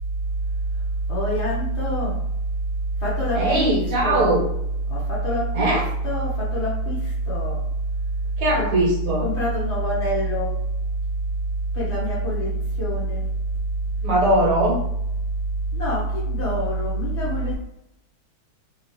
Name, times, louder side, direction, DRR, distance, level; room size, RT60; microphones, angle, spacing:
voice 1, 1.1-2.2 3.0-3.7 4.0-4.4 4.9-7.0 7.3-7.6 8.5-8.7 9.2-10.5 11.7-12.5 12.8-13.2 15.7-17.5, right 1 dB, 50° left, -6 dB, 1.0 m, -24 dB
voice 2, 3.3-4.4 5.5-5.8 8.4-9.3 14.0-14.8, right 1 dB, 70° right, -4 dB, 1.7 m, -20 dB
3.3 x 2.7 x 3.0 m, 0.85 s
omnidirectional pair, 1.9 m